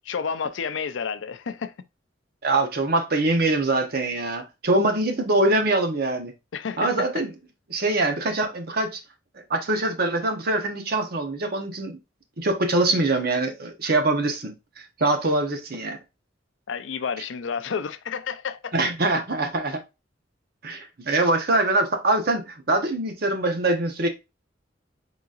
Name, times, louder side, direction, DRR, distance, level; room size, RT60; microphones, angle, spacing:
voice 1, 0.1-1.7 6.5-7.1 16.7-18.7, left 6 dB, 80° left, 0.4 m, -30 dB
voice 2, 2.4-6.3 6.8-7.3 7.7-9.0 9.5-12.0 12.4-16.0 18.7-19.8 20.6-24.1, right 2 dB, 55° right, 0.9 m, -23 dB
4.0 x 3.9 x 2.4 m
head